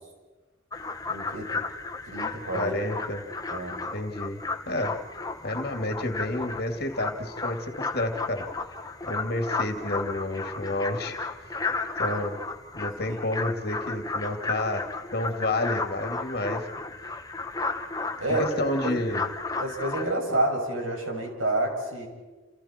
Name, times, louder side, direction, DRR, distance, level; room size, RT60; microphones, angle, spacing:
sound 1, 0.7-20.1, left 3 dB, 20° left, 1.0 m, -34 dB
voice 1, 1.1-1.7 2.0-2.8 3.5-3.8 13.2-13.3 18.2-18.5 18.8-19.0 19.6-22.1, right 1 dB, 85° right, 1 dB, 6.4 m, -29 dB
voice 2, 2.5-3.2 3.9-4.4 4.7-4.9 5.4-8.4 9.1-11.2 12.0-12.4 12.7-14.8 15.1-16.7 18.4-19.2, left 1 dB, 50° left, 4 dB, 2.6 m, -30 dB
29.5 x 29.5 x 4.5 m, 1.2 s
head